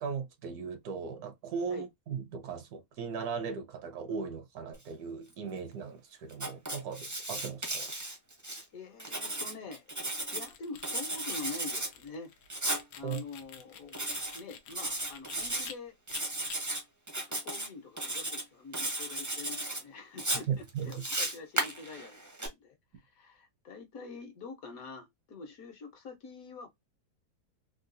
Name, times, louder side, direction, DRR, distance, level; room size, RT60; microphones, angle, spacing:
voice 1, 0.0-7.9 13.0-13.2 20.5-20.9, right 6 dB, 70° right, 1.2 m, -37 dB
Writing, 6.3-8.6 9.0-10.5 10.8-11.9 12.5-12.8 13.9-14.4 14.7-15.7 16.1-16.8 17.1-17.7 18.0-18.4 18.7-19.8 20.2-22.5, right 1 dB, 20° right, 0.5 m, -35 dB
voice 2, 8.7-9.8 10.3-12.3 13.0-14.0 14.3-15.9 17.2-26.7, left 4 dB, 65° left, 1.2 m, -45 dB
sound 1, 10.2-15.7 16.1-16.6, left 8 dB, 85° left, 1.2 m, -49 dB
3.7 x 2.3 x 2.5 m
omnidirectional pair, 1.7 m